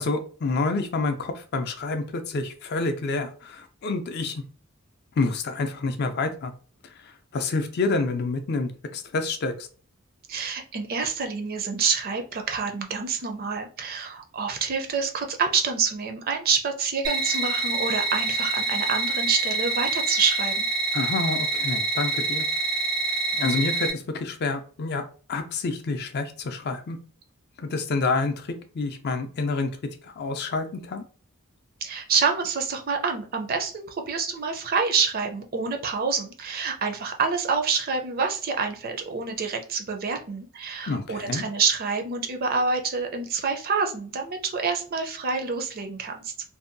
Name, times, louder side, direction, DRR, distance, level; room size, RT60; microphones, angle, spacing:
voice 1, 0.0-4.4 5.2-6.5 7.3-9.7 20.9-22.5 23.3-27.0 27.6-29.7 30.0-31.0 40.9-41.4, left 3 dB, 45° left, 0.4 m, -28 dB
voice 2, 10.3-20.7 31.8-46.3, right 5 dB, 40° right, 0.4 m, -27 dB
sound 1, 17.0-23.9, right 2 dB, 90° right, 0.5 m, -26 dB
2.6 x 2.2 x 2.5 m
head